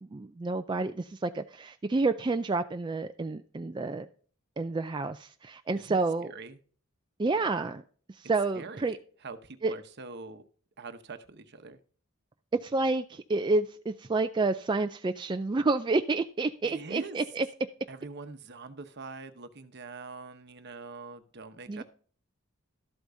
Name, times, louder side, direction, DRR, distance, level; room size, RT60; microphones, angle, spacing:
voice 1, 0.0-4.1 4.6-6.3 7.2-7.8 8.1-9.0 9.6-9.7 12.6-17.5 21.7-21.8, right 3 dB, 20° right, 0.4 m, -29 dB
voice 2, 5.8-6.6 8.5-10.4 10.8-11.8 16.6-17.2 17.9-21.8, right 3 dB, 55° right, 0.9 m, -44 dB
12.5 x 8.1 x 2.7 m
head